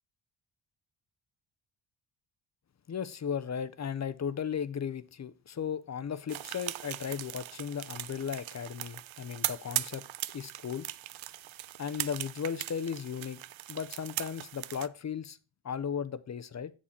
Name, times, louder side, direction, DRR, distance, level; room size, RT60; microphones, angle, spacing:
voice 1, 2.9-10.1 10.3-10.9 11.8-13.4 13.7-15.4 15.6-16.7, left 7 dB, 35° left, 0.6 m, -36 dB
sound 1, 6.3-14.9, right 15 dB, 70° right, 0.5 m, -39 dB
8.5 x 7.3 x 4.3 m
wide cardioid pair, 135°, 50 cm